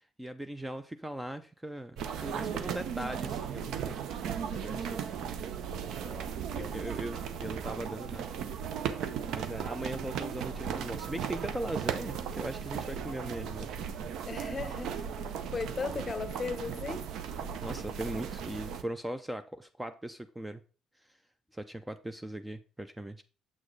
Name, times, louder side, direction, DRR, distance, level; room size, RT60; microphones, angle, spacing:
voice 1, 0.0-4.0 4.5-5.0 6.5-8.3 9.3-13.7 17.6-20.6 21.5-23.2, right 1 dB, 10° right, 0.5 m, -39 dB
sound 1, 2.0-18.8, right 8 dB, 75° right, 0.6 m, -36 dB
voice 2, 6.0-6.9 14.2-15.0 15.5-17.1, left 4 dB, 30° left, 0.8 m, -37 dB
7.4 x 6.3 x 3.2 m
cardioid pair, 95°, 0 cm